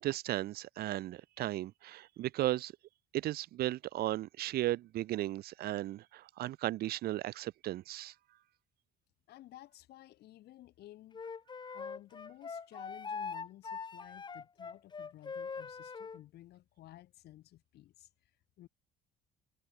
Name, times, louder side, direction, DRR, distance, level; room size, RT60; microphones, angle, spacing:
voice 1, 0.0-2.7 3.1-8.1 11.7-11.8, right 15 dB, 65° right, 0.7 m, -35 dB
voice 2, 9.3-11.2 11.7-18.1 18.6-18.7, left 14 dB, 75° left, 5.2 m, -55 dB
Wind instrument woodwind instrument, 11.1-16.2, left 5 dB, 25° left, 1.3 m, -42 dB
cardioid pair, 110°, 17 cm